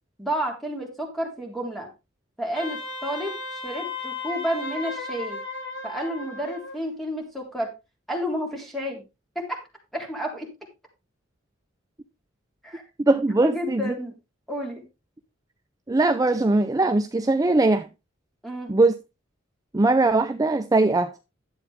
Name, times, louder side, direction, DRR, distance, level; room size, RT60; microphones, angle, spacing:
voice 1, 0.2-1.9 2.4-3.3 3.6-5.4 5.8-7.7 8.1-9.0 9.4-9.6 9.9-10.5 12.6-12.8 13.4-14.1 14.5-14.8 18.4-18.7, equal, ahead, 3.4 m, -30 dB
Wind instrument woodwind instrument, 2.6-6.8, left 3 dB, 60° left, 2.2 m, -35 dB
voice 2, 13.1-13.8 15.9-17.9 18.7-18.9 19.7-21.1, right 2 dB, 20° right, 0.5 m, -20 dB
11.0 x 8.1 x 3.5 m
head